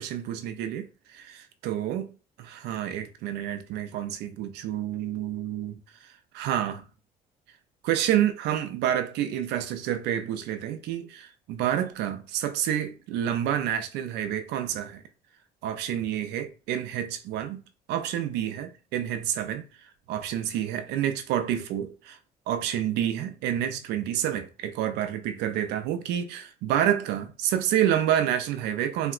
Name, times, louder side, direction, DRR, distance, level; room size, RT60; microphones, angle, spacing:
voice 1, 0.0-2.1 2.5-6.9 7.8-15.0 15.6-17.6 17.9-19.6 20.1-22.2 22.5-29.1, right 10 dB, 85° right, 0.4 m, -28 dB
3.6 x 2.1 x 2.4 m
cardioid pair, 110°, 17 cm